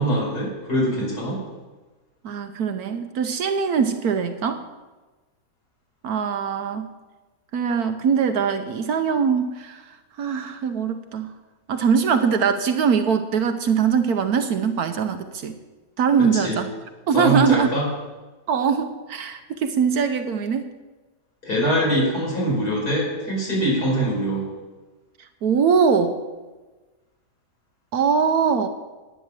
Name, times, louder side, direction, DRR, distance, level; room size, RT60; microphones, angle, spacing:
voice 1, 0.0-1.4 16.3-16.6 17.1-17.8 21.4-24.5, right 1 dB, 60° left, -4 dB, 5.6 m, -23 dB
voice 2, 2.2-4.6 6.0-6.9 7.5-9.8 10.2-11.3 11.7-15.6 16.0-16.7 17.1-17.7 18.5-20.7 25.4-26.2 27.9-28.7, right 6 dB, 65° right, 8 dB, 1.2 m, -22 dB
10.5 x 9.7 x 7.4 m, 1.2 s
omnidirectional pair, 1.8 m